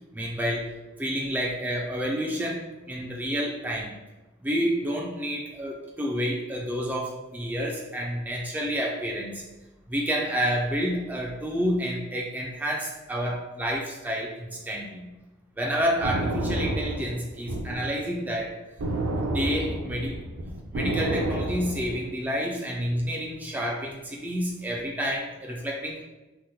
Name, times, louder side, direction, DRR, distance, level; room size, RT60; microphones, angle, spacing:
voice 1, 0.1-0.7 1.0-4.0 4.4-9.4 9.9-15.1 15.6-18.6 19.1-20.2 20.7-26.0, equal, 10° right, -2 dB, 0.3 m, -29 dB
sound 1, 15.8-17.9 18.8-22.1, right 1 dB, 70° right, 0.5 m, -29 dB
2.9 x 2.1 x 3.5 m, 1.1 s
head